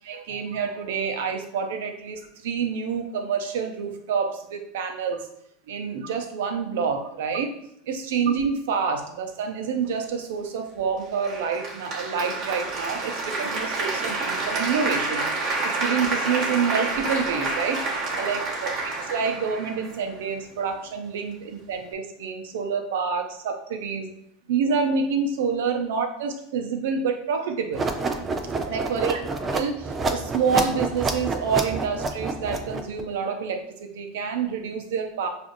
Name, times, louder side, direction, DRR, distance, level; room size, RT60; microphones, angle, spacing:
voice 1, 0.0-5.3 5.7-7.5 7.8-17.8 18.1-24.1 24.5-27.9 28.7-29.2 29.5-35.3, right 6 dB, 80° right, 5 dB, 0.6 m, -27 dB
Applause, 11.2-20.3, right 3 dB, 40° right, 1.0 m, -28 dB
sound 1, 27.7-33.0, right 3 dB, 25° right, 0.4 m, -28 dB
4.9 x 2.5 x 2.6 m, 0.72 s
supercardioid pair, 110°, 0 cm